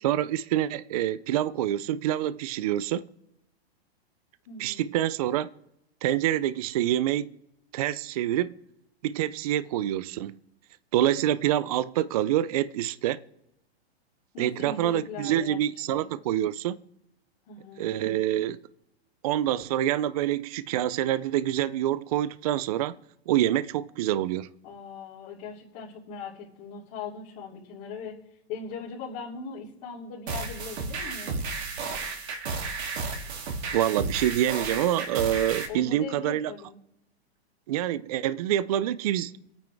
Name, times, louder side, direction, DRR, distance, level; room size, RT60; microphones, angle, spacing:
voice 1, 0.0-3.0 4.6-5.5 6.0-7.4 7.7-8.5 9.0-10.4 10.9-13.2 14.4-16.8 17.8-18.6 19.2-22.9 23.3-24.5 33.7-36.5 37.7-39.3, right 12 dB, 35° right, 0.4 m, -26 dB
voice 2, 4.5-4.8 14.3-15.6 15.9-16.1 17.5-17.9 24.6-28.1 28.5-31.4 35.7-36.8, left 5 dB, 40° left, 3.3 m, -40 dB
sound 1, 30.3-35.7, right 4 dB, 80° right, 3.0 m, -33 dB
24.0 x 9.2 x 3.5 m
hypercardioid pair, 155°, 32 cm